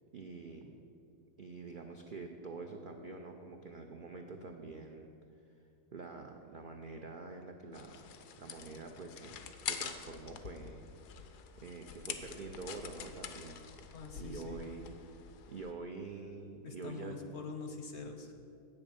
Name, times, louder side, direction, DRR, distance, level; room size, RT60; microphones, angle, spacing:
voice 1, 0.1-0.8 1.4-5.1 5.9-8.1 8.4-10.8 11.6-14.9 15.5-17.2, right 3 dB, 75° right, 3 dB, 0.4 m, -46 dB
sound 1, 7.7-15.7, left 8 dB, 90° left, 1.3 m, -46 dB
voice 2, 13.9-14.6 16.6-18.3, left 4 dB, 60° left, 5 dB, 0.8 m, -45 dB
8.2 x 7.0 x 6.9 m, 2.6 s
omnidirectional pair, 1.7 m